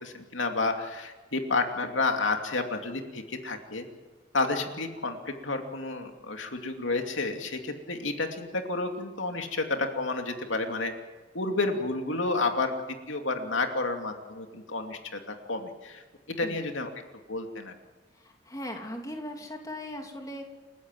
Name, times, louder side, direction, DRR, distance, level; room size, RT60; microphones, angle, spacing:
voice 1, 0.0-3.8 4.3-10.9 11.3-12.7 13.1-15.2 15.5-16.0 16.4-16.9 17.3-17.7, left 3 dB, 80° left, 4 dB, 2.7 m, -30 dB
voice 2, 18.1-20.5, left 1 dB, 20° left, 2 dB, 3.0 m, -38 dB
29.0 x 15.5 x 9.3 m, 1.3 s
head